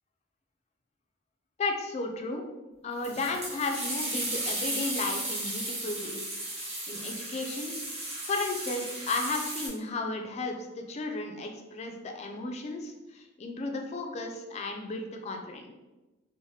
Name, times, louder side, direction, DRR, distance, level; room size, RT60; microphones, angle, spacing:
voice 1, 1.6-2.4 2.8-6.2 6.9-7.7 8.3-15.7, left 3 dB, 35° left, 3 dB, 0.3 m, -34 dB
sound 1, 3.0-9.7, right 1 dB, 35° right, 0.8 m, -35 dB
3.1 x 2.1 x 2.7 m, 1.1 s
head